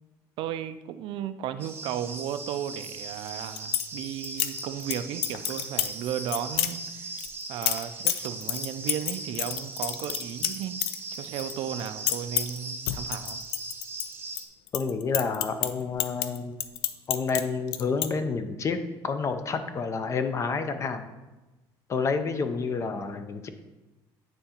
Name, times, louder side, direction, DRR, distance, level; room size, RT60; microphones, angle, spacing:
voice 1, 0.4-7.2 7.5-10.9 11.1-13.4, right 10 dB, 65° right, 11 dB, 0.4 m, -35 dB
sound 1, 1.6-14.5, right 3 dB, 25° right, 0.6 m, -39 dB
sound 2, 3.3-3.9 4.2-4.9 5.2-5.9 6.3-6.7 7.2-11.5 11.8-12.6 12.9-14.4 14.7-17.4 17.7-18.1, left 13 dB, 85° left, 0.4 m, -29 dB
voice 2, 14.7-16.5 17.1-18.8 19.0-21.0 21.9-23.5, left 5 dB, 35° left, 9 dB, 0.5 m, -29 dB
9.0 x 3.8 x 2.9 m, 1.1 s
cardioid pair, 125°, 9 cm